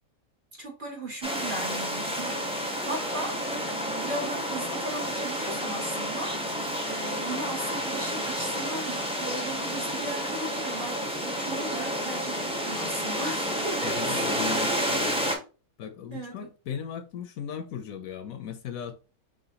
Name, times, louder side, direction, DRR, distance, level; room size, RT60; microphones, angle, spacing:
voice 1, 0.6-14.7 16.1-16.5, right 2 dB, 40° right, 0.8 m, -37 dB
sound 1, 1.2-15.4, equal, 10° right, 0.4 m, -30 dB
voice 2, 13.8-15.4 15.8-19.0, left 8 dB, 70° left, 0.9 m, -37 dB
4.9 x 3.0 x 2.8 m
omnidirectional pair, 1.6 m